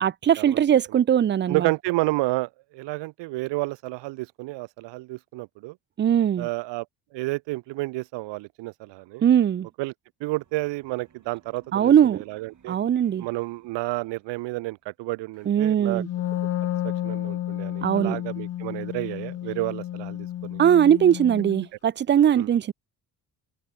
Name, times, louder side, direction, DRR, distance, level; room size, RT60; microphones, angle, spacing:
voice 1, 0.0-1.7 6.0-6.5 9.2-9.7 11.7-12.2 12.7-13.3 15.5-16.1 17.8-18.2 20.6-22.7, right 9 dB, 30° right, 0.4 m, -20 dB
voice 2, 1.5-5.8 6.4-6.9 7.1-9.2 9.8-9.9 10.2-12.8 13.2-16.0 16.8-20.6 22.3-22.5, right 21 dB, 85° right, 1.2 m, -30 dB
sound 1, 10.2-14.9, right 7 dB, 45° right, 7.4 m, -60 dB
Wind instrument woodwind instrument, 16.0-21.7, left 12 dB, 40° left, 0.4 m, -31 dB
cardioid pair, 90°, 42 cm